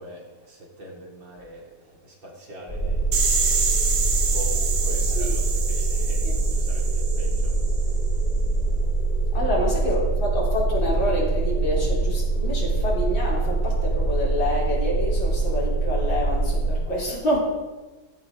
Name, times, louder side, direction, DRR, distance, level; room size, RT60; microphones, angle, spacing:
voice 1, 0.0-3.1 4.2-6.2 6.5-7.6 9.3-9.7, right 1 dB, 70° right, -3 dB, 4.1 m, -42 dB
sound 1, 2.7-16.7, right 3 dB, 25° left, 4.8 m, -24 dB
sound 2, 3.1-7.9, right 5 dB, 90° right, 2.3 m, -27 dB
voice 2, 5.0-5.3 5.8-5.9 6.2-6.3 9.3-17.4, equal, 70° left, -4 dB, 4.8 m, -27 dB
17.5 x 13.5 x 3.9 m, 1.2 s
omnidirectional pair, 2.1 m